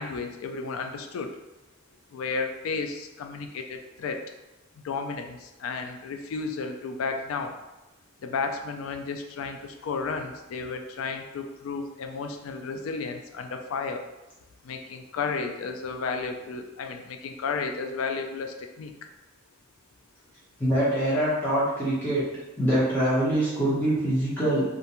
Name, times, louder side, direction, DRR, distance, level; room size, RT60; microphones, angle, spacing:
voice 1, 0.0-1.4 2.1-4.2 4.8-7.5 8.2-14.0 14.6-18.9, left 4 dB, 85° left, 5 dB, 0.3 m, -33 dB
voice 2, 20.6-22.3 22.6-24.6, right 1 dB, 10° left, -10 dB, 0.8 m, -24 dB
2.5 x 2.2 x 2.8 m, 1.0 s
head